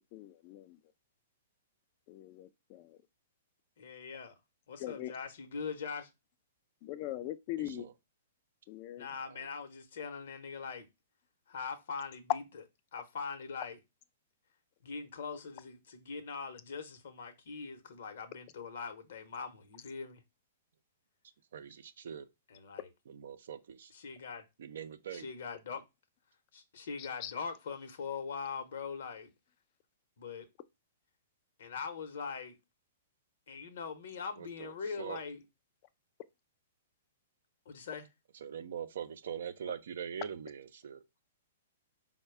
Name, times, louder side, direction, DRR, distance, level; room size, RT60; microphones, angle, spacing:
voice 1, 0.1-0.7 2.1-2.8 4.8-5.1 6.8-7.8 8.7-9.1 27.2-27.3, left 14 dB, 40° left, 0.4 m, -41 dB
voice 2, 3.8-4.3 4.7-6.1 9.0-10.9 11.5-12.6 12.9-13.8 14.8-20.2 22.5-22.9 23.9-24.4 25.1-25.8 26.5-29.3 30.2-30.5 31.6-32.6 33.5-35.4 37.7-38.1, left 5 dB, 65° left, 0.9 m, -42 dB
voice 3, 7.6-7.9 9.3-9.5 21.5-22.3 23.1-23.9 24.6-25.3 34.4-35.2 38.4-41.0, right 8 dB, 65° right, 0.5 m, -43 dB
4.6 x 2.2 x 4.5 m
figure-of-eight pair, 110°, 0 cm